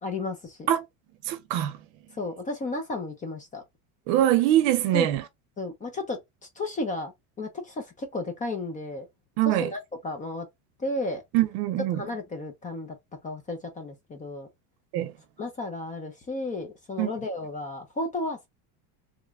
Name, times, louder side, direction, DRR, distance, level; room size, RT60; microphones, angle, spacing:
voice 1, 0.0-0.7 2.1-3.6 4.9-5.1 5.6-6.2 6.6-7.1 7.4-9.1 9.5-10.5 10.8-11.2 11.9-13.0 13.2-14.5 15.4-18.5, left 2 dB, 20° left, 0.5 m, -33 dB
voice 2, 1.3-1.8 4.1-5.2 9.4-9.7 11.3-12.1 14.9-15.1 17.0-17.1, right 13 dB, 60° right, 0.7 m, -23 dB
3.1 x 2.1 x 3.5 m
cardioid pair, 145°, 43 cm